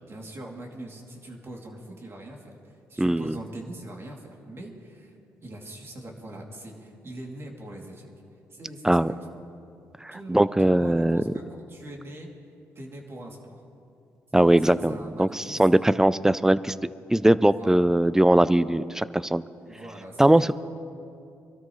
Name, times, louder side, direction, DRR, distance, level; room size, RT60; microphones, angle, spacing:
voice 1, 0.1-5.2 5.4-8.1 8.5-9.3 10.1-12.3 12.7-13.6 14.3-15.6 17.5-17.9 19.7-20.5, right 1 dB, 45° right, -1 dB, 2.8 m, -42 dB
voice 2, 3.0-3.4 8.8-9.1 10.0-11.2 14.3-16.7 17.1-19.4 20.2-20.5, right 1 dB, 10° right, 16 dB, 0.4 m, -20 dB
24.0 x 13.0 x 3.2 m, 2.6 s
supercardioid pair, 65°, 6 cm